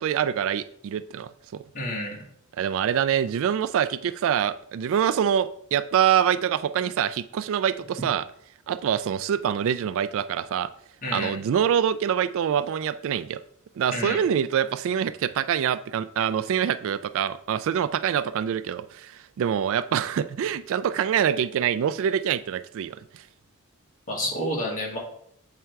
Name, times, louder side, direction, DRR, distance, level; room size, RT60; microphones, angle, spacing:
voice 1, 0.0-1.6 2.6-8.3 8.7-10.7 11.1-13.4 13.8-23.2, right 9 dB, 65° right, 15 dB, 0.3 m, -25 dB
voice 2, 1.7-2.2 11.0-11.3 13.9-14.2 24.1-25.0, left 1 dB, 40° left, -2 dB, 1.9 m, -29 dB
7.6 x 3.4 x 4.6 m, 0.68 s
head